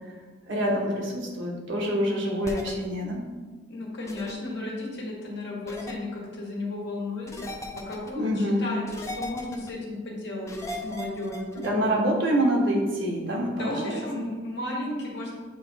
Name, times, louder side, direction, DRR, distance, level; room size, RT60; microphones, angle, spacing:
voice 1, 0.5-3.2 8.1-8.7 11.6-14.2, equal, 65° right, -1 dB, 1.3 m, -26 dB
sound 1, 2.4-2.7 4.1-4.3 5.7-5.9 7.3-8.1 8.9-9.7 10.5-11.7, left 1 dB, 15° left, 0.6 m, -37 dB
voice 2, 3.7-7.5 7.9-11.9 13.5-15.3, left 2 dB, 60° left, -3 dB, 1.7 m, -34 dB
8.5 x 3.1 x 4.0 m, 1.4 s
head